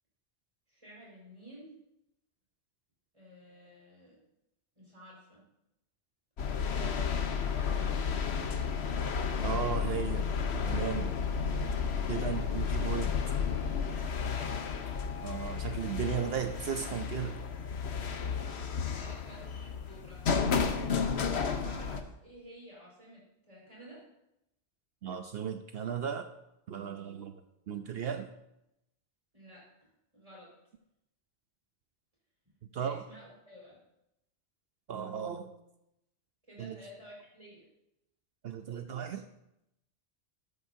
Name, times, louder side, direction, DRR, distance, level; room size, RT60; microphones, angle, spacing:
voice 1, 0.7-1.7 3.1-4.2 4.7-5.4 6.7-8.5 12.1-12.6 13.9-14.6 18.0-20.3 20.9-24.0 29.3-30.5 32.7-33.8 36.5-37.7, equal, 30° right, -5 dB, 5.0 m, -52 dB
sound 1, 6.4-22.0, left 6 dB, 75° left, 1.2 m, -32 dB
voice 2, 9.4-10.2 10.7-11.1 12.1-13.1 15.2-17.4 25.0-26.3 26.7-27.3 27.7-28.3 32.7-33.0 34.9-35.5 36.6-36.7 38.4-39.2, right 8 dB, 65° right, 7 dB, 0.9 m, -35 dB
13.5 x 13.0 x 2.7 m, 0.85 s
omnidirectional pair, 1.1 m